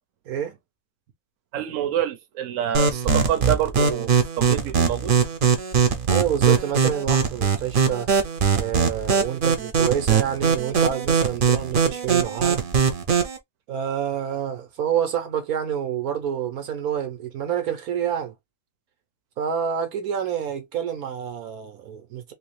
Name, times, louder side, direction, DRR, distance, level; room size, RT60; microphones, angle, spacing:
voice 1, 0.2-0.6 6.1-8.1 8.5-12.6 13.7-18.3 19.4-22.3, right 9 dB, 90° right, 1.4 m, -27 dB
voice 2, 1.5-4.1 4.4-5.1, right 11 dB, 70° right, 1.1 m, -26 dB
sound 1, 2.7-13.4, right 6 dB, 45° right, 0.8 m, -21 dB
3.2 x 2.9 x 3.1 m
omnidirectional pair, 1.5 m